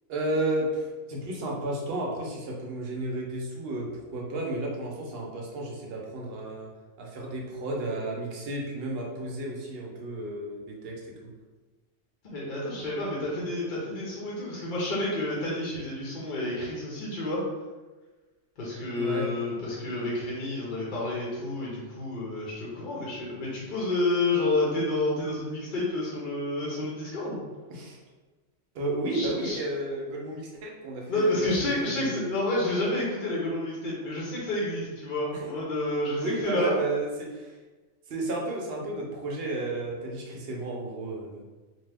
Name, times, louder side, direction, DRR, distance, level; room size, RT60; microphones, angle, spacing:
voice 1, 0.1-6.7 7.0-11.3 19.0-19.3 27.7-28.0 28.7-32.2 35.3-35.4 36.2-37.5 38.1-41.4, right 2 dB, 60° right, -2 dB, 0.8 m, -32 dB
voice 2, 12.3-17.4 18.6-27.4 29.1-29.6 31.1-36.7, left 2 dB, 50° left, -6 dB, 0.8 m, -29 dB
2.8 x 2.2 x 3.3 m, 1.2 s
omnidirectional pair, 1.3 m